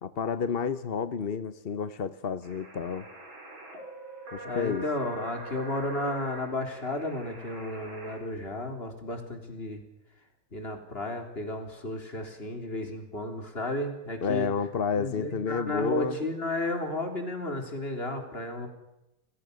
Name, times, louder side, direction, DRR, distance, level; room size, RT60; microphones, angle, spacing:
voice 1, 0.0-3.1 4.3-4.8 14.2-16.2, left 6 dB, 45° left, 12 dB, 0.8 m, -30 dB
sound 1, 2.4-8.2, right 2 dB, 80° right, 6.2 m, -44 dB
voice 2, 4.4-9.8 10.5-14.5 15.0-18.7, left 1 dB, 30° left, 5 dB, 3.9 m, -33 dB
28.5 x 20.0 x 6.9 m, 0.93 s
omnidirectional pair, 2.1 m